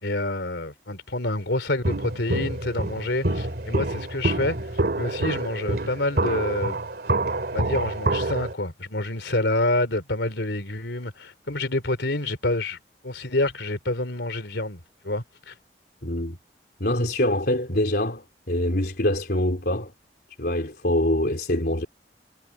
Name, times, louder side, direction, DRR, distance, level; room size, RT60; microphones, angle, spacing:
voice 1, 0.0-6.8 7.5-12.8 13.0-15.5, left 2 dB, 80° left, 3.1 m, -28 dB
Walk footsteps, 1.8-8.5, right 2 dB, 60° right, 2.5 m, -27 dB
voice 2, 16.0-16.4 16.8-19.9 20.4-21.9, left 1 dB, 60° left, 4.0 m, -24 dB
head